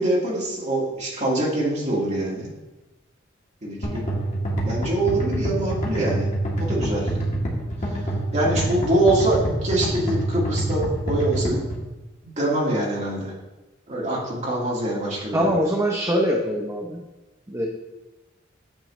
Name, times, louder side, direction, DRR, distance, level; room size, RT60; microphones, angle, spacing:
voice 1, 0.0-2.5 3.6-4.1 4.6-7.1 8.3-11.6 12.2-13.3 13.9-15.5, right 1 dB, 35° right, -4 dB, 1.9 m, -24 dB
sound 1, 3.8-11.8, right 1 dB, 40° left, 1.5 m, -26 dB
voice 2, 15.3-17.0 17.5-17.7, equal, 15° right, 0 dB, 0.7 m, -23 dB
8.8 x 6.2 x 3.1 m, 1.1 s
head